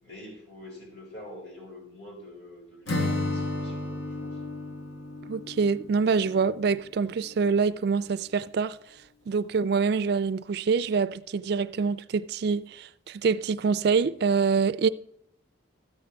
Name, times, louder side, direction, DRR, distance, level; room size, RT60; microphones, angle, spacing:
voice 1, 0.0-4.4, left 1 dB, 60° left, 5.3 m, -46 dB
Acoustic guitar / Strum, 2.9-6.8, left 2 dB, 85° left, 1.4 m, -33 dB
voice 2, 5.2-8.8 9.3-14.9, right 5 dB, 55° right, 0.3 m, -25 dB
13.5 x 8.8 x 3.4 m
head